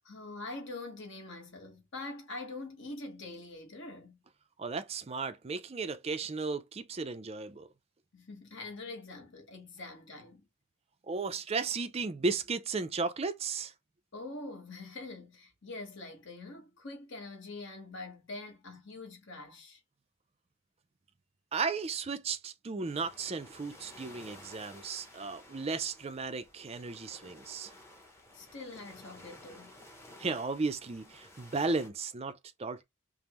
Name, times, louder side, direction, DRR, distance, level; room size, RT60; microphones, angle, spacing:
voice 1, 0.0-4.2 8.1-10.5 14.1-19.8 28.3-29.8, left 2 dB, 55° left, 1.2 m, -44 dB
voice 2, 4.6-7.7 11.1-13.7 21.5-27.7 30.2-32.8, right 4 dB, 25° right, 0.4 m, -35 dB
sound 1, 22.8-31.9, left 1 dB, 10° left, 0.8 m, -54 dB
5.1 x 2.0 x 3.0 m
head